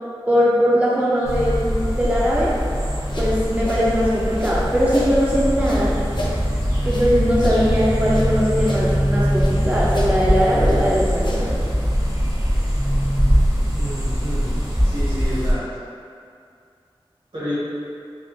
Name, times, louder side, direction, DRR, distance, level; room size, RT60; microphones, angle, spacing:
voice 1, 0.3-2.5 3.2-5.9 6.8-11.5, equal, 15° right, -7 dB, 0.5 m, -20 dB
sound 1, 1.2-15.5, equal, 40° right, 0.8 m, -21 dB
sound 2, 2.9-5.2 5.6-8.3 8.6-9.6 9.9-11.7, left 1 dB, 50° left, 0.5 m, -32 dB
voice 2, 13.7-14.4 14.8-15.6 17.3-17.5, equal, 70° right, -11 dB, 1.5 m, -29 dB
3.6 x 2.3 x 2.7 m, 2.3 s
wide cardioid pair, 40°, 10 cm